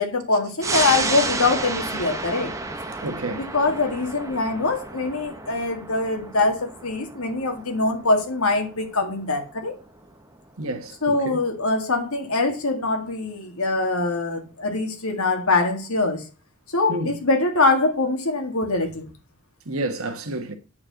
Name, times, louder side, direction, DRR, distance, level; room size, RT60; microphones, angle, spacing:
voice 1, 0.0-2.5 3.3-9.7 11.0-16.2 16.7-19.1, left 3 dB, 80° left, 2.0 m, -23 dB
sound 1, 0.6-11.6 12.0-12.1, right 3 dB, 15° right, 0.8 m, -32 dB
voice 2, 3.0-3.5 10.6-11.4 16.9-17.1 19.7-20.5, right 2 dB, 75° right, 1.4 m, -30 dB
8.6 x 4.3 x 6.4 m
head